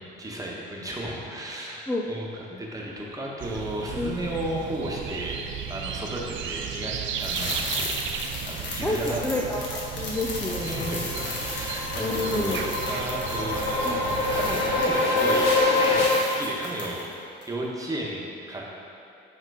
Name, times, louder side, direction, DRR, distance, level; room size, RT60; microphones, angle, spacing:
voice 1, 0.0-7.9 8.4-9.2 10.6-17.0 17.5-18.6, right 1 dB, 15° right, -3 dB, 1.4 m, -34 dB
voice 2, 1.9-2.6 3.9-4.1 8.8-11.1 12.0-12.6 13.8-14.0, left 2 dB, 10° left, -3 dB, 0.6 m, -29 dB
sound 1, 3.4-14.9, right 7 dB, 70° right, 0.5 m, -35 dB
sound 2, 7.2-17.1 17.4-17.5, left 2 dB, 60° left, 1.4 m, -36 dB
sound 3, 9.5-16.1, left 2 dB, 85° left, 1.2 m, -26 dB
7.8 x 3.6 x 5.0 m, 2.7 s
cardioid pair, 90°, 20 cm